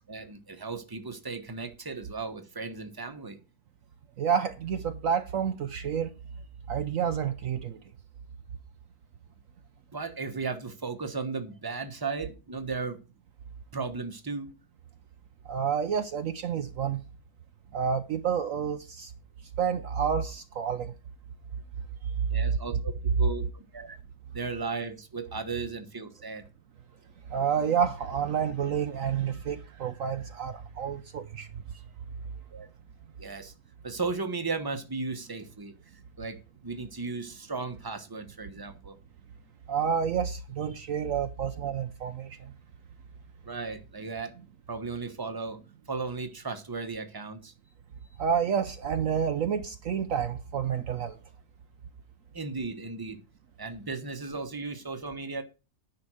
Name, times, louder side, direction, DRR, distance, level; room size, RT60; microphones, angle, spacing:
voice 1, 0.0-3.4 9.9-13.0 13.7-14.5 22.3-24.0 24.3-26.4 32.5-32.7 33.2-33.5 33.8-35.7 36.2-36.4 36.6-39.0 43.4-44.3 44.7-45.6 45.9-47.5 52.3-53.2 53.6-55.4, right 4 dB, 15° right, 1.1 m, -35 dB
voice 2, 4.2-6.1 6.7-7.8 15.5-17.0 17.7-19.1 19.6-20.9 22.2-22.4 27.3-31.5 39.7-42.5 48.2-51.2, right 7 dB, 60° right, 1.0 m, -29 dB
10.5 x 5.9 x 6.3 m
omnidirectional pair, 1.7 m